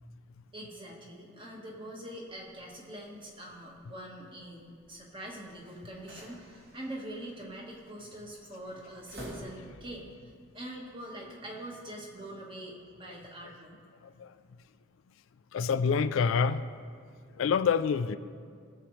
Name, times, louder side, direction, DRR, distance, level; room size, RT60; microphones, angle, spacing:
voice 1, 0.5-13.7, right 1 dB, 25° right, -1 dB, 1.4 m, -44 dB
sound 1, 2.3-10.0, equal, 50° right, 2.4 m, -51 dB
voice 2, 15.5-16.7 17.4-18.2, left 6 dB, 80° left, 12 dB, 0.4 m, -26 dB
18.0 x 7.3 x 3.2 m, 2.1 s
head